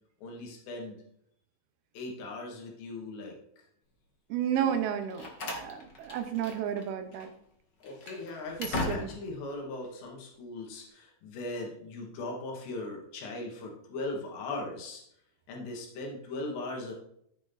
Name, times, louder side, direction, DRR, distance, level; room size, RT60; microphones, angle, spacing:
voice 1, 0.2-1.0 1.9-3.4 4.6-4.8 7.8-15.0 15.5-16.9, left 2 dB, 80° left, -1 dB, 4.5 m, -39 dB
voice 2, 4.3-7.3 8.6-9.1, right 9 dB, 75° right, 7 dB, 2.7 m, -32 dB
Slam, 4.8-6.9 7.1-7.3 7.8-9.4, left 2 dB, 60° left, 1.1 m, -38 dB
14.0 x 8.2 x 4.0 m, 0.72 s
omnidirectional pair, 4.9 m